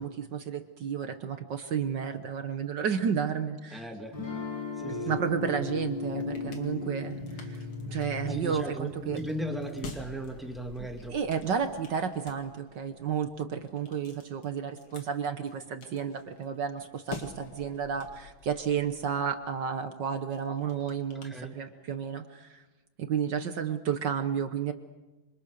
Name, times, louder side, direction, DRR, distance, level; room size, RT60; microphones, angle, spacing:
voice 1, 0.0-3.9 5.1-9.2 11.1-22.6 23.0-24.7, right 7 dB, 60° right, 8 dB, 1.7 m, -32 dB
voice 2, 3.7-4.2 4.8-5.2 8.2-11.1 21.2-21.6, right 1 dB, ahead, 3 dB, 2.2 m, -37 dB
sound 1, 4.1-9.1, left 6 dB, 50° left, 6.4 m, -42 dB
sound 2, 4.8-11.5, left 3 dB, 30° left, 2.0 m, -38 dB
sound 3, 6.0-22.0, left 4 dB, 80° left, 3.2 m, -50 dB
27.0 x 25.5 x 6.6 m, 1.1 s
omnidirectional pair, 2.3 m